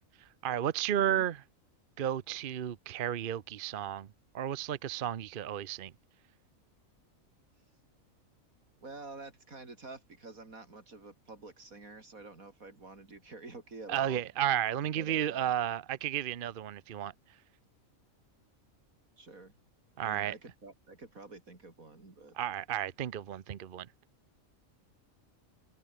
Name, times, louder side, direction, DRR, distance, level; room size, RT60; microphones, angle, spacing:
voice 1, 0.2-1.4 2.0-4.1 4.3-5.9 13.9-17.1 20.0-20.3 22.3-23.9, right 10 dB, 50° right, 0.7 m, -33 dB
voice 2, 8.8-14.2 15.0-15.5 19.2-19.5 20.0-22.4, right 3 dB, 85° right, 4.5 m, -49 dB
omnidirectional pair, 1.4 m